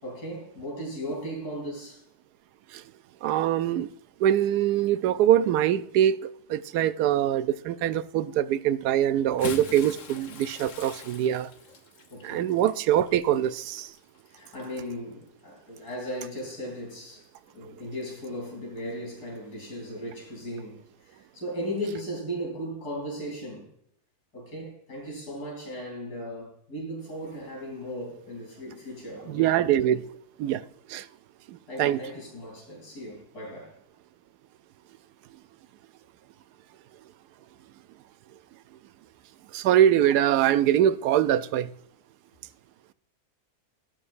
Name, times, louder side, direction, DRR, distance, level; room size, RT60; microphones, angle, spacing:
voice 1, 0.0-2.0 10.3-10.4 12.1-12.5 14.3-17.3 17.5-20.8 21.0-23.7 24.3-29.6 31.7-33.8, equal, 80° left, 4.1 m, -37 dB
voice 2, 3.2-3.9 4.2-6.2 6.5-11.5 12.2-13.9 29.3-30.0 30.4-30.6 30.9-31.1 31.5-32.0 39.5-41.7, right 11 dB, 90° right, 1.1 m, -23 dB
Bathtub (filling or washing) / Splash splatter, 9.2-14.9 15.8-15.9 17.4-17.5, left 7 dB, 55° left, 1.2 m, -43 dB
18.5 x 6.4 x 2.5 m
omnidirectional pair, 1.7 m